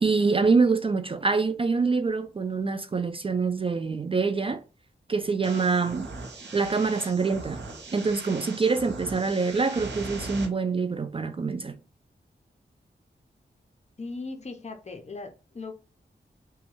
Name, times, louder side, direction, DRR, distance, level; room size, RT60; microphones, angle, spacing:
voice 1, 0.0-4.6 5.1-6.1 6.5-7.6 7.9-11.8, right 4 dB, 30° right, 0.3 m, -25 dB
sound 1, 5.4-10.5, right 3 dB, 85° right, 0.8 m, -39 dB
voice 2, 14.0-15.7, left 3 dB, 40° left, 0.7 m, -38 dB
3.0 x 2.3 x 3.1 m
cardioid pair, 60°, 18 cm